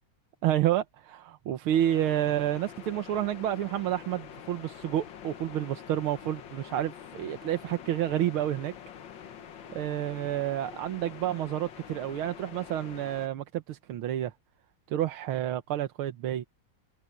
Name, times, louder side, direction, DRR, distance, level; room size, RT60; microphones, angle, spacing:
voice 1, 0.4-8.7 9.7-14.3 14.9-16.4, right 12 dB, 90° right, 1.8 m, -29 dB
sound 1, 1.7-13.3, left 8 dB, 65° left, 1.8 m, -46 dB
omnidirectional pair, 2.3 m